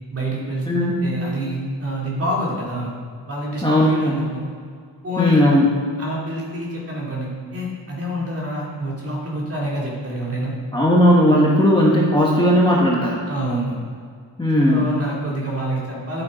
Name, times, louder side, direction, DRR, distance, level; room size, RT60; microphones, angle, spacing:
voice 1, 0.1-2.9 3.3-4.5 5.0-5.4 6.0-10.6 13.3-13.8 14.6-16.2, equal, 30° right, -4 dB, 3.0 m, -27 dB
voice 2, 0.7-1.0 3.6-4.1 5.2-5.6 10.7-13.2 14.4-14.9, equal, 10° left, -4 dB, 1.3 m, -16 dB
11.0 x 8.2 x 5.1 m, 2.1 s
wide cardioid pair, 140°, 44 cm